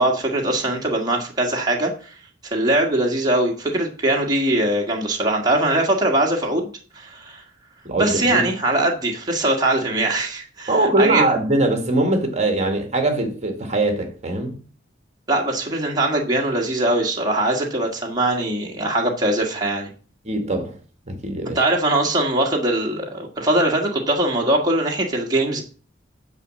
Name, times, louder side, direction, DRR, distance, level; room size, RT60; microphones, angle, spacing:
voice 1, 0.0-2.1 2.4-6.7 6.9-7.4 8.0-11.3 15.3-19.9 21.6-25.6, right 1 dB, 20° right, 1.7 m, -21 dB
voice 2, 7.9-8.5 10.7-14.6 20.3-20.7 21.1-21.6, right 2 dB, 40° right, 1.7 m, -21 dB
9.6 x 5.2 x 7.4 m
head